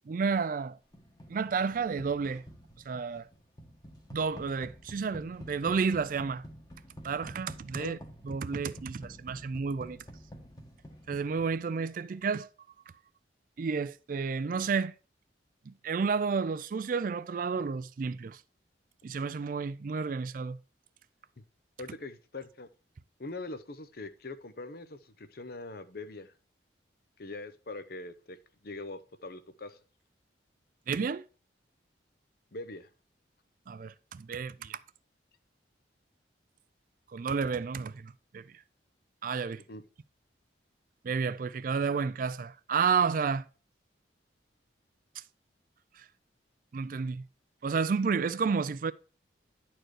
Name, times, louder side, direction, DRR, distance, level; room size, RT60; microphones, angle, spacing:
voice 1, 0.1-0.8 1.3-2.4 2.9-3.3 4.1-6.4 7.0-8.0 8.2-10.0 11.1-12.5 13.6-14.9 15.7-18.4 19.0-20.6 30.9-31.2 33.7-34.8 37.1-38.4 39.2-39.6 41.0-43.4 46.0-46.1 46.7-47.2 47.6-48.9, right 5 dB, 45° right, 0.3 m, -31 dB
sound 1, 0.9-11.8, equal, 20° left, 1.3 m, -49 dB
voice 2, 21.8-22.7 23.2-26.3 27.2-28.4 28.6-29.8 32.5-32.9 39.7-39.8, left 2 dB, 55° left, 0.7 m, -42 dB
10.5 x 4.5 x 4.7 m
head